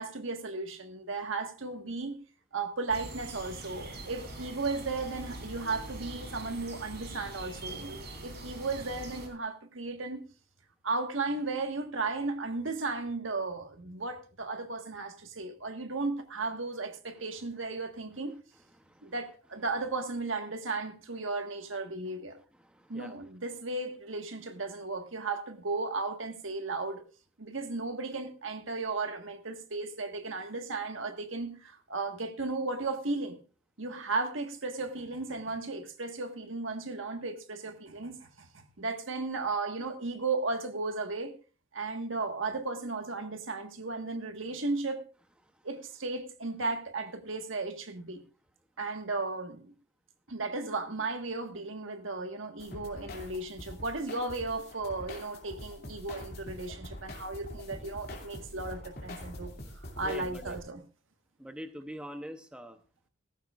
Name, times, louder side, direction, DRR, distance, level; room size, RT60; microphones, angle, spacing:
voice 1, 0.0-2.2 2.5-10.2 10.8-18.3 19.0-22.4 22.9-27.0 27.4-33.4 33.8-41.3 41.7-45.0 45.6-48.2 48.8-49.7 50.3-59.5 60.0-60.8, right 3 dB, 75° right, 1.6 m, -35 dB
sound 1, 2.9-9.3, right 2 dB, 55° right, 3.3 m, -43 dB
voice 2, 18.8-19.1 22.6-23.1 60.0-60.6 61.4-62.8, equal, 5° right, 0.8 m, -44 dB
sound 2, 52.6-60.6, left 1 dB, 50° left, 2.6 m, -44 dB
16.5 x 14.0 x 2.5 m
head